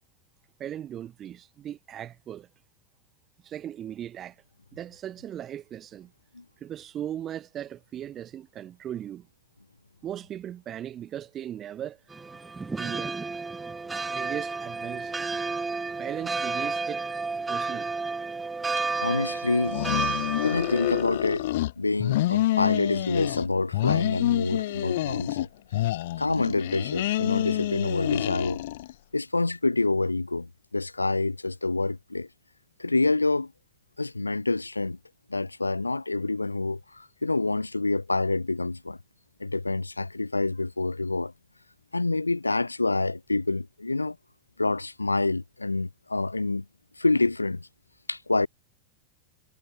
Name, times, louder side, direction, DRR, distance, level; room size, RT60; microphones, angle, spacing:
voice 1, 0.6-2.5 3.4-4.4 4.7-6.1 6.6-9.3 10.0-12.0 12.8-13.2 14.0-15.3 16.0-17.1 17.5-18.0, right 10 dB, 30° right, 1.7 m, -38 dB
sound 1, 12.1-21.0, right 4 dB, 10° right, 1.5 m, -31 dB
voice 2, 19.0-19.8 20.4-21.5 21.8-25.5 26.2-28.6 29.1-32.3 32.8-33.5 34.0-35.0 35.3-39.0 39.4-41.3 41.9-44.2 44.6-46.6 47.0-47.7 48.1-48.5, left 3 dB, 80° left, 1.8 m, -27 dB
sound 2, 19.6-21.7 22.0-23.5 23.7-25.5 25.7-28.9, left 15 dB, 55° left, 1.0 m, -27 dB
figure-of-eight pair, 90°, 0 cm